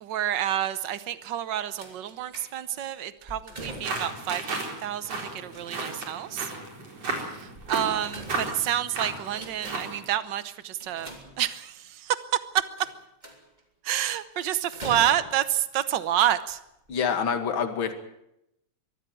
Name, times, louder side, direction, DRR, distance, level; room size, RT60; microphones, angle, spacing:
voice 1, 0.0-6.5 7.3-12.2 12.5-12.6 13.8-16.6, right 11 dB, 85° right, 14 dB, 1.0 m, -29 dB
sound 1, 1.8-2.8 3.2-4.2 5.5-6.5 7.6-8.8 9.2-10.0 10.8-11.8 12.8-13.6 14.7-15.6 16.4-16.5 16.9-17.0, right 1 dB, 15° right, 3.0 m, -43 dB
sound 2, 3.6-10.0, right 3 dB, 55° right, 5.2 m, -34 dB
voice 2, 16.9-17.9, left 6 dB, 45° left, 7 dB, 2.7 m, -26 dB
23.5 x 15.0 x 9.3 m, 0.81 s
omnidirectional pair, 3.3 m